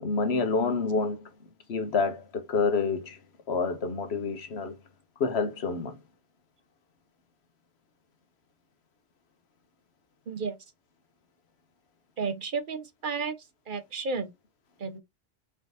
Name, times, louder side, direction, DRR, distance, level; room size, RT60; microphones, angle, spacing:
voice 1, 0.0-1.3 1.7-3.2 3.5-4.7 5.2-6.0, left 4 dB, 85° left, 1.3 m, -28 dB
voice 2, 10.3-10.6 12.2-13.4 13.7-14.3 14.8-15.0, right 4 dB, 55° right, 0.9 m, -32 dB
4.4 x 3.6 x 2.7 m
omnidirectional pair, 1.1 m